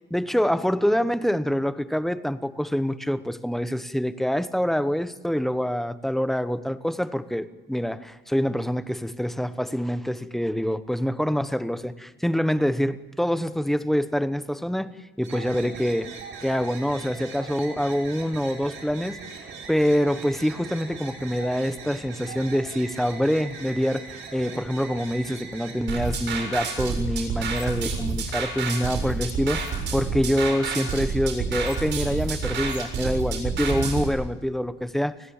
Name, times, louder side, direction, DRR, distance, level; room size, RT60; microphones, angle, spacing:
voice 1, 0.1-16.1 16.4-35.1, equal, ahead, 12 dB, 1.1 m, -26 dB
sound 1, 15.2-25.9, right 5 dB, 85° right, 7.2 m, -40 dB
sound 2, 25.9-34.1, right 5 dB, 65° right, 6.9 m, -29 dB
29.5 x 20.0 x 7.3 m, 1.1 s
cardioid pair, 145°, 20 cm